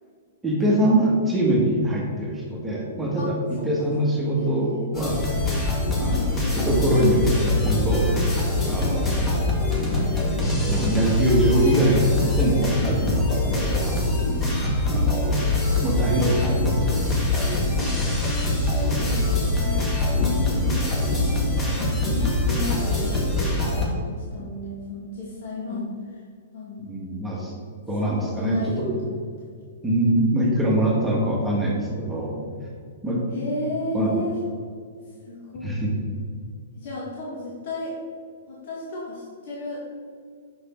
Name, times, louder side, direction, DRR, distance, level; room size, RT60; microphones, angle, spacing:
voice 1, 0.4-5.3 6.0-8.1 8.6-9.4 10.7-14.0 14.9-15.4 15.8-17.0 17.4-17.6 26.8-27.5 27.9-29.0 29.8-32.4 33.0-33.2 33.9-34.1 35.6-35.9, right 1 dB, 10° right, -4 dB, 1.4 m, -23 dB
voice 2, 3.6-3.9 4.3-4.9 6.0-6.3 7.9-8.1 14.4-14.9 18.8-19.7 20.1-26.2 26.5-27.0 28.2-29.1 33.3-34.3 35.2-35.8 36.8-38.0 38.5-39.8, left 2 dB, 60° left, -6 dB, 1.5 m, -34 dB
sound 1, 4.9-23.9, left 1 dB, 20° left, 1.5 m, -24 dB
sound 2, 5.4-21.4, left 3 dB, 85° left, 0.6 m, -29 dB
5.8 x 4.9 x 4.3 m, 2.1 s
hypercardioid pair, 125°, 0 cm